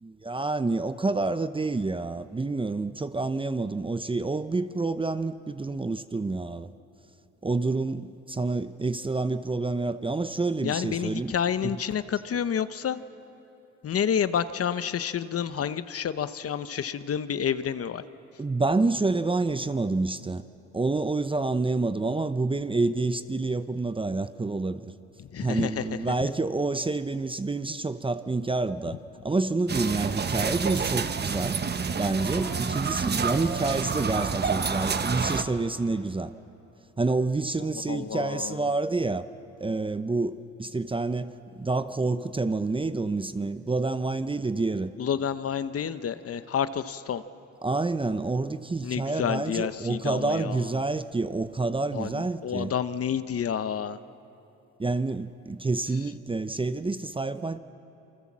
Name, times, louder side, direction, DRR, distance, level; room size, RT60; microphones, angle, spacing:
voice 1, 0.0-6.7 7.4-11.3 18.4-20.4 20.7-24.8 25.4-29.0 29.2-31.6 31.9-36.3 37.0-39.2 39.6-41.3 41.6-44.9 47.6-52.7 54.8-57.6, right 3 dB, 15° right, 11 dB, 0.7 m, -28 dB
voice 2, 10.6-13.0 13.8-18.0 25.2-26.3 37.9-38.7 45.0-47.2 48.8-50.8 51.9-54.0, left 8 dB, 50° left, 12 dB, 0.9 m, -29 dB
sound 1, 29.7-35.4, right 5 dB, 35° right, 1.1 m, -28 dB
28.0 x 24.0 x 7.4 m, 2.8 s
cardioid pair, 90°, 30 cm